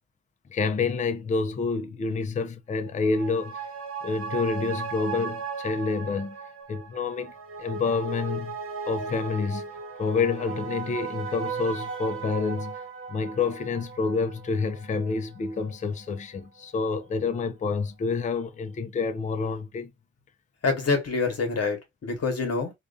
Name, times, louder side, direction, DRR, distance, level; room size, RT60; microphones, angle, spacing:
voice 1, 0.5-3.6 4.0-6.4 6.7-7.3 7.6-8.6 8.9-9.7 10.0-12.8 13.1-19.9, left 4 dB, 25° left, 0.3 m, -28 dB
sound 1, 2.9-15.7 16.1-16.2, right 5 dB, 40° right, 0.6 m, -37 dB
voice 2, 20.6-22.7, left 4 dB, 45° left, 1.1 m, -26 dB
2.5 x 2.3 x 2.3 m
cardioid pair, 105°, 33 cm